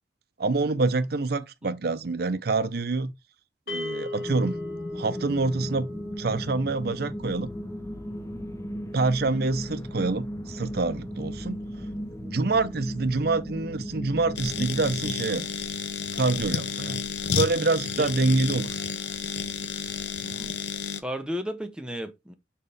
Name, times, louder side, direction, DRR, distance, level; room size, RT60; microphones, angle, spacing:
voice 1, 0.4-3.1 3.7-4.6 4.9-5.9 6.2-7.5 8.9-11.6 12.2-15.4 16.1-17.0 17.3-18.8, right 3 dB, 60° right, 0.6 m, -26 dB
sound 1, 3.7-14.0, left 1 dB, 60° left, 1.8 m, -41 dB
sound 2, 4.2-15.1, equal, 15° left, 0.5 m, -36 dB
sound 3, 14.4-21.0, left 6 dB, 80° left, 0.7 m, -31 dB
voice 2, 21.0-22.3, equal, 5° right, 0.9 m, -34 dB
6.4 x 4.3 x 3.5 m
head